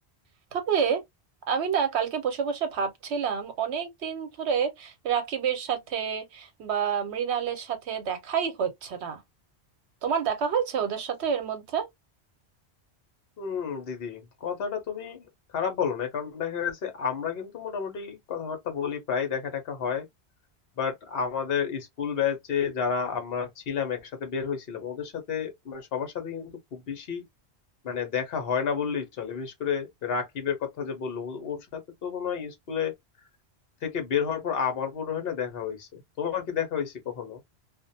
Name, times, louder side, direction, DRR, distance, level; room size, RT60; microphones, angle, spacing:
voice 1, 0.5-1.0 1.5-9.2 10.0-11.9, right 7 dB, 80° right, 1.0 m, -28 dB
voice 2, 13.4-20.1 20.8-27.2 27.8-32.9 33.8-37.4, left 7 dB, 65° left, 1.0 m, -31 dB
2.5 x 2.1 x 2.6 m
omnidirectional pair, 1.1 m